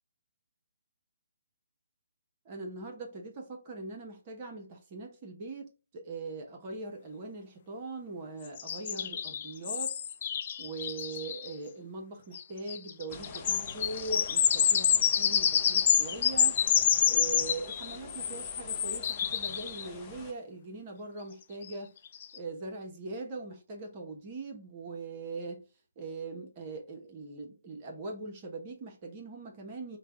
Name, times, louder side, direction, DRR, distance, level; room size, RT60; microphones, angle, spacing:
voice 1, 2.4-10.0 10.6-16.6 17.1-21.9 22.3-25.6 26.0-30.0, right 3 dB, 30° right, 0.9 m, -41 dB
sound 1, 8.6-11.5 12.3-12.4 12.7-19.9 21.7-21.8 22.2-22.4, left 8 dB, 40° left, 0.4 m, -28 dB
sound 2, 13.1-20.3, left 4 dB, 15° left, 0.8 m, -47 dB
5.0 x 2.2 x 3.7 m
figure-of-eight pair, 140°, 0 cm